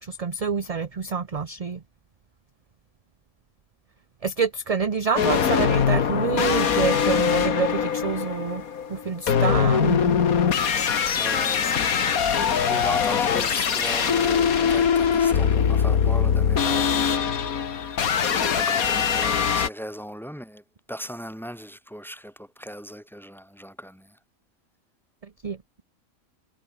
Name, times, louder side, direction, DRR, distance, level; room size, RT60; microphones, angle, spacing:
voice 1, 0.0-1.8 4.2-8.6 8.9-10.1 25.4-25.8, right 5 dB, 35° right, 0.7 m, -27 dB
sound 1, 5.2-19.7, left 7 dB, 90° left, 1.9 m, -22 dB
voice 2, 11.1-17.4 17.8-24.2, equal, ahead, 2.6 m, -38 dB
omnidirectional pair, 1.5 m